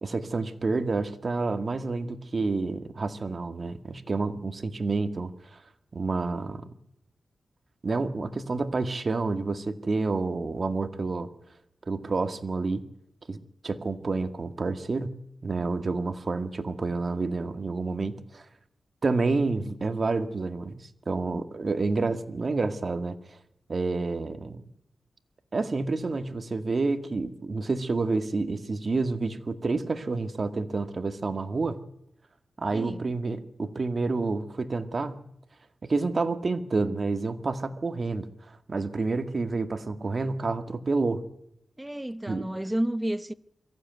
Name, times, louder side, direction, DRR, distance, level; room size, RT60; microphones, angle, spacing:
voice 1, 0.0-5.3 5.9-6.6 7.8-11.3 11.9-12.8 13.3-13.4 13.6-15.2 15.4-18.4 19.0-23.2 23.7-24.6 25.5-31.8 32.6-35.2 35.8-38.3 38.7-41.2 42.3-42.5, right 3 dB, 50° right, 1.9 m, -29 dB
voice 2, 32.7-33.0 41.8-43.3, right 1 dB, 10° right, 0.9 m, -30 dB
23.0 x 15.0 x 9.3 m
cardioid pair, 75°, 0 cm